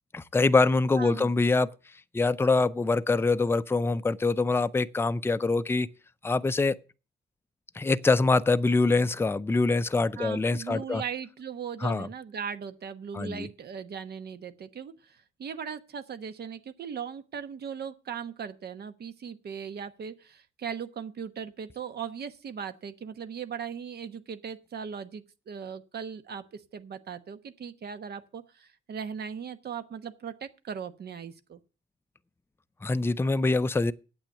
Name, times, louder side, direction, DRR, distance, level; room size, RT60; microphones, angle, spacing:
voice 1, 0.1-1.7 2.1-5.9 6.2-6.8 7.7-11.0 11.8-12.1 13.1-13.5 32.8-33.9, left 3 dB, 10° left, 0.5 m, -24 dB
voice 2, 1.0-1.3 10.2-31.6, right 7 dB, 55° right, 1.1 m, -38 dB
8.9 x 8.0 x 7.2 m
cardioid pair, 90°, 20 cm